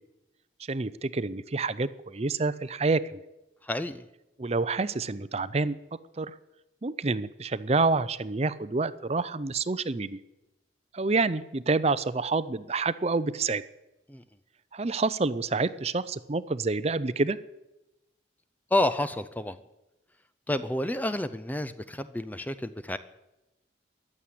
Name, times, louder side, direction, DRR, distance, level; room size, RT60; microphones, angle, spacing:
voice 1, 0.7-3.0 4.4-5.8 6.2-6.3 6.8-10.2 10.9-13.6 14.7-17.4, right 3 dB, 35° right, 15 dB, 0.6 m, -28 dB
voice 2, 3.6-4.1 14.1-14.2 18.7-19.6 20.5-23.0, left 1 dB, 10° left, 13 dB, 0.5 m, -29 dB
14.5 x 11.0 x 8.4 m, 0.97 s
head